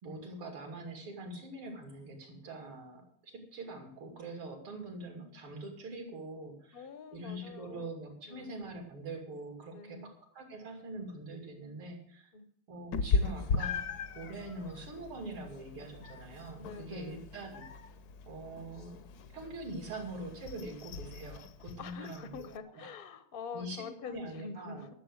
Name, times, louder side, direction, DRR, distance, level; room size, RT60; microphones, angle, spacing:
voice 1, 0.0-6.9 7.1-12.3 12.7-13.8 14.2-17.7 18.3-18.9 19.3-22.3 22.7-22.9 23.5-24.9, right 2 dB, 75° right, 1 dB, 3.7 m, -44 dB
voice 2, 6.7-7.9 8.3-8.5 9.7-10.1 12.3-12.5 16.6-17.2 21.8-24.9, left 5 dB, 45° left, 11 dB, 0.7 m, -45 dB
Meow, 12.9-22.6, left 4 dB, 65° left, 1.0 m, -38 dB
12.5 x 7.3 x 7.9 m, 0.66 s
omnidirectional pair, 2.4 m